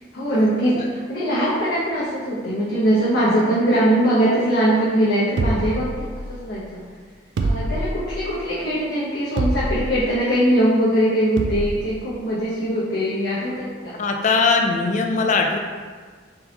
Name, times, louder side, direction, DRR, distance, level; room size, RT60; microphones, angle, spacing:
voice 1, 0.1-6.8 7.4-14.0, right 1 dB, 65° left, -10 dB, 0.9 m, -21 dB
sound 1, 5.4-6.5 7.4-8.3 9.4-10.1 11.4-11.8, right 2 dB, 75° right, 0.4 m, -25 dB
voice 2, 14.0-15.6, left 4 dB, 40° left, 2 dB, 0.4 m, -20 dB
4.0 x 3.8 x 2.8 m, 1.5 s
head